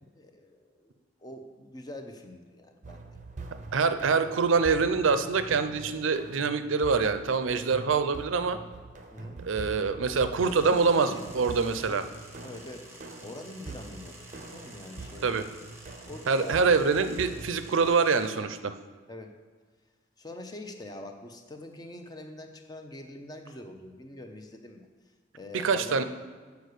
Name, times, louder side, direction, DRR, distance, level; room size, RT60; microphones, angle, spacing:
voice 1, 0.0-3.2 9.1-9.4 10.4-11.5 11.8-12.0 12.4-12.8 13.2-15.4 16.1-16.7 19.1-19.3 20.2-24.9 25.3-26.0, left 1 dB, 20° left, 4 dB, 0.7 m, -44 dB
sound 1, 2.8-17.9, right 3 dB, 40° right, 0.6 m, -44 dB
voice 2, 3.7-8.6 9.4-12.0 15.2-15.5 16.3-18.7 25.5-26.0, right 5 dB, 85° right, 10 dB, 0.5 m, -25 dB
sound 2, 10.4-18.4, right 1 dB, 15° right, 1.1 m, -51 dB
8.2 x 4.7 x 6.6 m, 1.5 s
head